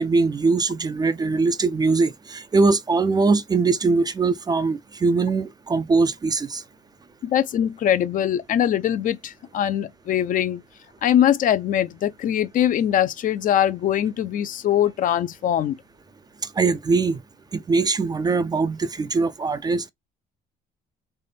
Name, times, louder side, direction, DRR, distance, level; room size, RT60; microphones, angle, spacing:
voice 1, 0.0-6.6 16.6-17.2 17.5-19.9, right 4 dB, 25° right, 0.4 m, -21 dB
voice 2, 7.2-10.6 11.0-15.8, left 10 dB, 55° left, 0.6 m, -22 dB
3.4 x 3.1 x 4.2 m
cardioid pair, 110°, 17 cm